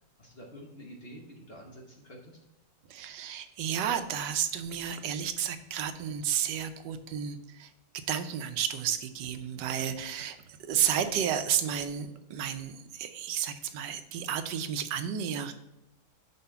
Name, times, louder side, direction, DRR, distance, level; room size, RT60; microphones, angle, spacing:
voice 1, 0.2-2.4, equal, 45° left, 0 dB, 1.0 m, -48 dB
voice 2, 2.9-7.7 8.1-15.5, right 9 dB, 85° right, 9 dB, 1.2 m, -32 dB
5.4 x 4.8 x 5.6 m, 0.87 s
omnidirectional pair, 1.8 m